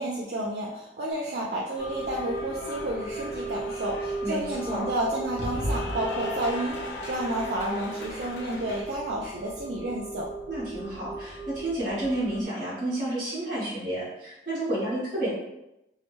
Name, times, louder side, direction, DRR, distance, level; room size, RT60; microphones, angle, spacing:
voice 1, 0.0-10.3, right 1 dB, 65° right, -3 dB, 0.4 m, -31 dB
Cheering / Applause, 1.1-8.8, left 1 dB, 75° left, 0.6 m, -38 dB
sound 1, 1.8-12.5, right 2 dB, 10° left, 0.9 m, -37 dB
voice 2, 4.2-4.8 10.5-15.3, right 1 dB, 50° right, -11 dB, 1.1 m, -30 dB
2.7 x 2.1 x 3.0 m, 0.87 s
head